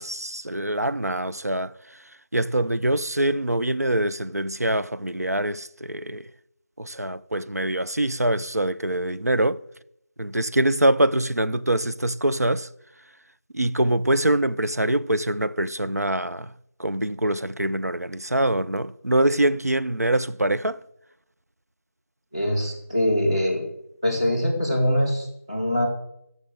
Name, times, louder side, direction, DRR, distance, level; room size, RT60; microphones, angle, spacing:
voice 1, 0.0-2.0 2.3-6.3 6.8-9.6 10.2-12.7 13.5-16.5 16.8-20.8, right 1 dB, 85° right, 0.6 m, -24 dB
voice 2, 22.3-23.6 24.0-25.9, left 1 dB, 20° right, 2.5 m, -23 dB
12.5 x 6.8 x 6.4 m
figure-of-eight pair, 175°, 8 cm